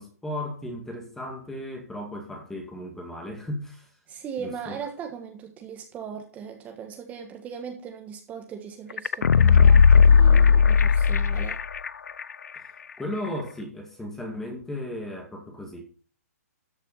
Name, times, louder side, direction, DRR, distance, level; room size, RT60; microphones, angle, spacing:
voice 1, 0.0-3.9 4.4-4.8 12.5-12.7 13.0-15.8, left 1 dB, 5° left, 2.1 m, -35 dB
voice 2, 4.1-11.6, right 7 dB, 15° right, 1.5 m, -38 dB
sound 1, 9.0-11.9 12.2-12.3, left 6 dB, 85° left, 0.6 m, -16 dB
13.5 x 6.6 x 5.5 m
hypercardioid pair, 150°, 9 cm